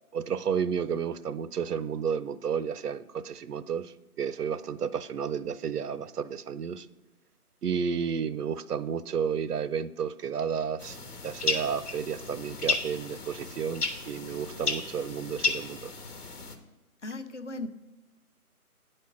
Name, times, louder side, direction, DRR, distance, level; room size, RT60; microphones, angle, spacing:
voice 1, 0.1-6.9 7.6-11.0 11.2-15.9, right 7 dB, 85° right, 0.6 m, -32 dB
sound 1, 10.8-16.6, left 3 dB, 90° left, 1.3 m, -33 dB
voice 2, 17.0-17.7, left 2 dB, 50° left, 0.6 m, -36 dB
9.2 x 4.4 x 6.3 m
figure-of-eight pair, 170°, 45 cm